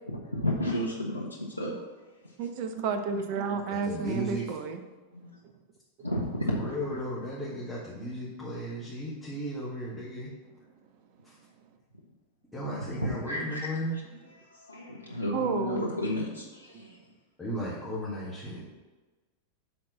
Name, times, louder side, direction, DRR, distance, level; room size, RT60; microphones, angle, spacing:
voice 1, 0.1-1.8 2.2-2.3 5.1-5.4 6.0-7.0 7.3-7.4 11.9-12.0 12.9-13.8 14.4-17.0, left 1 dB, 90° right, -2 dB, 0.9 m, -33 dB
voice 2, 2.4-4.8 15.3-15.8 16.9-17.0, right 5 dB, 45° right, 7 dB, 0.7 m, -31 dB
voice 3, 3.7-4.5 6.5-10.3 11.2-11.4 12.5-14.0 17.4-18.6, equal, 10° left, -9 dB, 1.8 m, -35 dB
6.2 x 4.2 x 6.0 m, 1.3 s
figure-of-eight pair, 90°, 0 cm